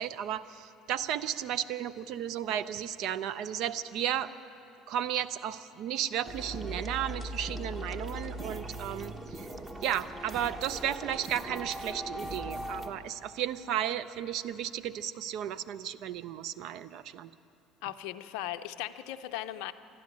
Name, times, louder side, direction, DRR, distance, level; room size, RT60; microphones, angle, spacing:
voice 1, 0.0-4.3 4.9-9.5 9.8-17.3, right 10 dB, 70° right, 14 dB, 0.5 m, -34 dB
sound 1, 6.2-12.9, right 1 dB, 30° right, 1.3 m, -39 dB
voice 2, 17.8-19.7, left 13 dB, 75° left, 10 dB, 0.5 m, -37 dB
12.5 x 11.5 x 9.7 m, 2.8 s
hypercardioid pair, 75°, 0 cm